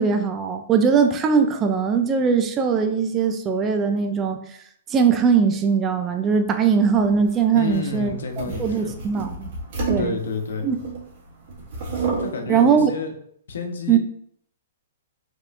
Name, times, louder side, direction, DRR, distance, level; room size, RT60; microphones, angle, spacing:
voice 1, 0.0-4.4 4.9-9.5 9.9-10.2 10.6-10.8 12.5-12.9 13.9-14.0, right 6 dB, 20° right, 6 dB, 0.4 m, -20 dB
sound 1, 6.9-11.1 11.5-12.3, right 4 dB, 50° right, 1.8 m, -30 dB
voice 2, 7.5-8.9 10.0-10.7 12.2-13.1 13.5-14.0, left 4 dB, 85° left, 5 dB, 1.0 m, -30 dB
5.3 x 3.6 x 2.5 m, 0.65 s
hypercardioid pair, 150°, 0 cm